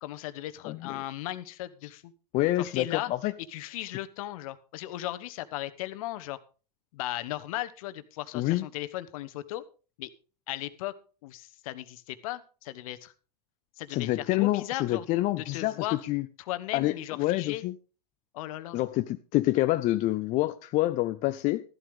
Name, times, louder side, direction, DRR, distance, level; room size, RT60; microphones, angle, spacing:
voice 1, 0.0-2.1 2.6-3.1 3.5-6.4 6.9-9.6 10.0-10.1 10.5-10.9 11.2-13.1 13.8-15.0 15.4-16.0 16.4-17.6 18.3-18.8, left 15 dB, 55° left, 1.2 m, -36 dB
voice 2, 0.6-1.0 2.3-3.3 3.9-4.0 8.3-8.6 13.9-16.3 16.7-17.7 18.7-21.6, left 16 dB, 35° left, 0.6 m, -27 dB
14.0 x 11.5 x 3.6 m
hypercardioid pair, 95°, 21 cm